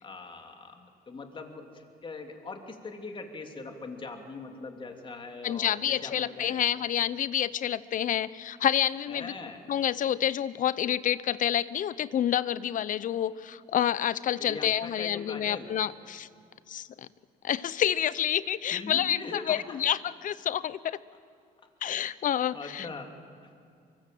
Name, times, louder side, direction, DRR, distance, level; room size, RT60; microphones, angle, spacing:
voice 1, 0.0-6.7 9.1-9.6 14.4-15.7 18.7-19.8 21.8-22.0 22.2-23.1 23.4-23.5, left 3 dB, 30° left, 4 dB, 3.2 m, -41 dB
voice 2, 5.4-9.3 9.7-16.3 16.7-17.1 17.4-21.0 21.8-22.9, left 10 dB, 50° left, 17 dB, 0.8 m, -28 dB
24.5 x 24.0 x 7.8 m, 2.3 s
cardioid pair, 110°, 17 cm